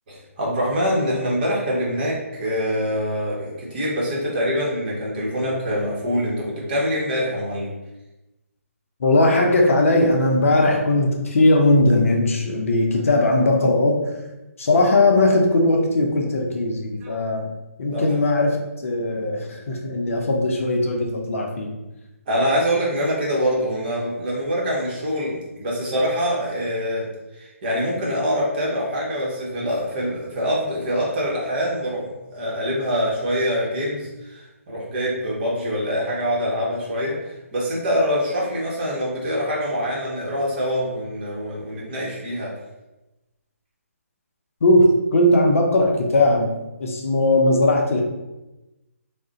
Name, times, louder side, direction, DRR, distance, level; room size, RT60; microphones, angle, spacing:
voice 1, 0.1-7.7 17.0-17.2 17.9-18.0 22.3-27.1 27.3-42.5, equal, 40° right, -4 dB, 1.0 m, -24 dB
voice 2, 9.0-14.1 14.6-17.5 17.8-21.7 44.6-46.5 46.8-48.0, left 2 dB, 60° left, 1 dB, 0.6 m, -19 dB
2.4 x 2.1 x 3.8 m, 1.0 s
figure-of-eight pair, 150°, 8 cm